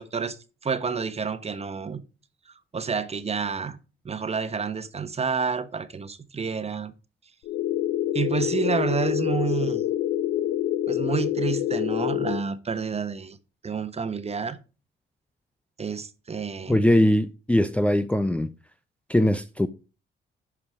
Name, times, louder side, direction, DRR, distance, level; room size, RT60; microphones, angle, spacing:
voice 1, 0.0-2.0 2.5-3.8 4.0-6.9 8.1-9.8 10.9-13.4 13.6-14.6 15.8-16.8, right 5 dB, 30° right, 1.2 m, -29 dB
sound 1, 7.5-12.4, left 12 dB, 85° left, 0.7 m, -26 dB
voice 2, 16.7-18.5 19.1-19.7, left 1 dB, 5° left, 0.6 m, -21 dB
11.0 x 5.0 x 4.9 m
cardioid pair, 90°, 20 cm